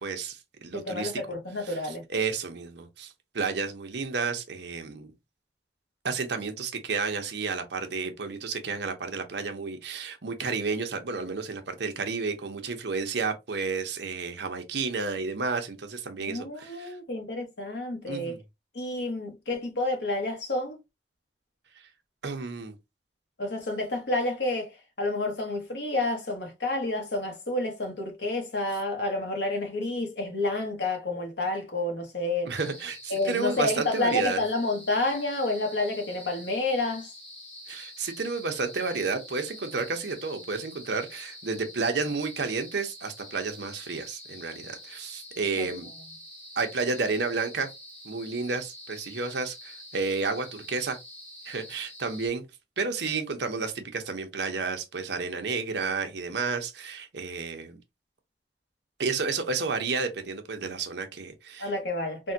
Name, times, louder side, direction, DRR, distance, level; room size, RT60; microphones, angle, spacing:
voice 1, 0.0-1.1 1.7-5.1 6.0-17.0 18.1-18.4 22.2-22.7 32.5-34.4 37.7-45.9 46.6-47.7 48.0-51.0 51.5-52.4 52.8-57.8 59.0-61.7, right 4 dB, 75° right, 0.7 m, -31 dB
voice 2, 0.7-2.0 16.2-18.4 18.7-20.8 23.4-32.5 33.1-37.1 45.6-45.7 61.6-62.3, left 2 dB, 75° left, 1.0 m, -29 dB
sound 1, 32.6-52.3, left 1 dB, 10° left, 1.1 m, -46 dB
3.5 x 2.2 x 2.7 m
head